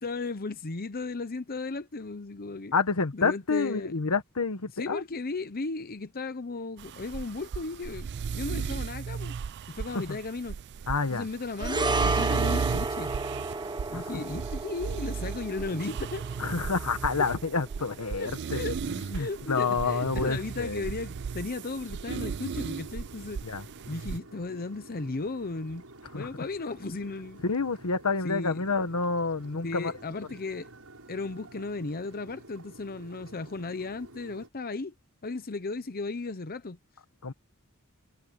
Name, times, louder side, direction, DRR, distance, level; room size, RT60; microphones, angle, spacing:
voice 1, 0.0-2.7 3.1-3.9 4.8-9.3 9.7-10.6 11.1-13.1 13.9-16.3 18.2-18.8 19.2-23.4 23.9-25.9 26.1-27.4 28.2-28.6 29.6-30.7 31.1-34.9 35.2-36.8, left 3 dB, 45° left, 0.9 m, -35 dB
voice 2, 2.7-5.0 9.9-10.2 10.9-11.3 13.9-14.2 16.4-18.6 18.9-20.9 23.4-23.6 26.1-26.3 27.4-29.9 37.2-37.3, left 4 dB, 85° left, 1.1 m, -29 dB
sound 1, 6.8-24.2, right 6 dB, 50° right, 0.4 m, -35 dB
sound 2, 11.6-20.1 20.3-20.5, right 2 dB, 20° right, 1.2 m, -34 dB
sound 3, 19.2-34.5, right 2 dB, 70° right, 7.5 m, -50 dB
head